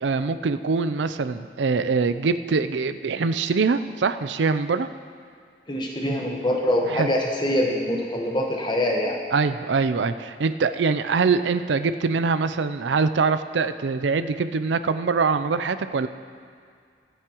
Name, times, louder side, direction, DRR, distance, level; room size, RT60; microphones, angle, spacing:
voice 1, 0.0-4.9 6.9-7.1 9.3-16.1, right 4 dB, 85° right, 11 dB, 0.5 m, -23 dB
voice 2, 5.7-9.2, left 1 dB, 25° left, 0 dB, 1.2 m, -24 dB
23.5 x 8.3 x 3.0 m, 2.2 s
head